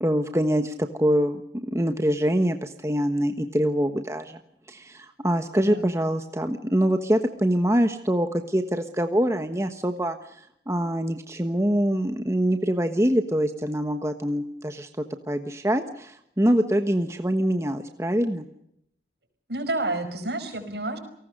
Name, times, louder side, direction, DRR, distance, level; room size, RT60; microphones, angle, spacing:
voice 1, 0.0-4.4 4.7-14.9 15.3-18.5, equal, 15° right, 7 dB, 1.2 m, -24 dB
voice 2, 19.5-21.0, right 2 dB, 70° right, 8 dB, 5.2 m, -29 dB
29.5 x 18.5 x 6.6 m, 0.76 s
head